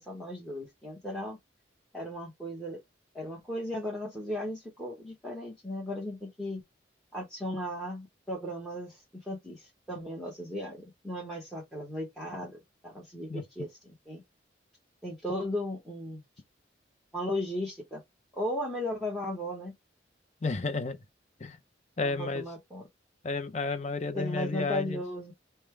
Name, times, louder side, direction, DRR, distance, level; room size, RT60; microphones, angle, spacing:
voice 1, 0.0-1.4 1.9-2.8 3.1-6.6 7.1-12.6 12.8-14.2 15.0-16.2 17.1-18.0 18.3-19.7 22.0-22.9 24.1-25.3, left 1 dB, ahead, 1.1 m, -36 dB
voice 2, 20.4-21.0 21.4-21.6 22.0-22.4 23.2-25.0, left 3 dB, 35° left, 0.6 m, -31 dB
5.3 x 2.2 x 3.2 m
head